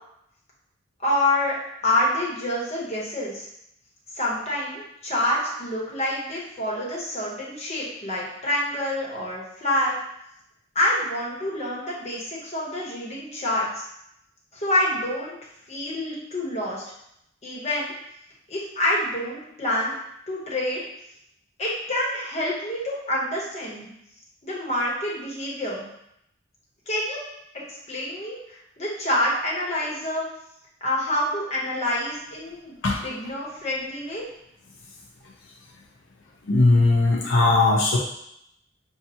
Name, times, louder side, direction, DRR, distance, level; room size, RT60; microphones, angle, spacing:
voice 1, 1.0-1.6 1.8-3.5 4.2-10.0 10.7-13.7 14.5-15.3 15.7-16.8 17.4-17.9 18.5-19.9 20.3-20.8 21.6-23.9 24.4-25.9 26.9-27.2 27.5-28.4 28.8-30.3 30.8-34.2, left 1 dB, 35° left, -5 dB, 1.1 m, -27 dB
voice 2, 36.5-38.0, left 2 dB, 75° left, -2 dB, 0.5 m, -18 dB
5.4 x 2.3 x 2.8 m, 0.78 s
head